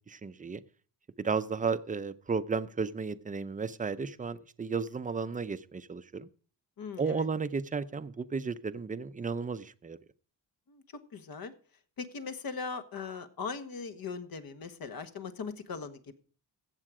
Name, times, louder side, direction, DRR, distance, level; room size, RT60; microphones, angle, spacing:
voice 1, 0.1-0.6 1.2-6.3 7.0-10.0, right 5 dB, 20° right, 13 dB, 0.6 m, -33 dB
voice 2, 6.8-7.3 10.7-10.8 11.1-11.5 12.0-16.2, left 5 dB, 55° left, 9 dB, 1.4 m, -39 dB
15.0 x 7.6 x 4.9 m, 0.40 s
cardioid pair, 110°, 42 cm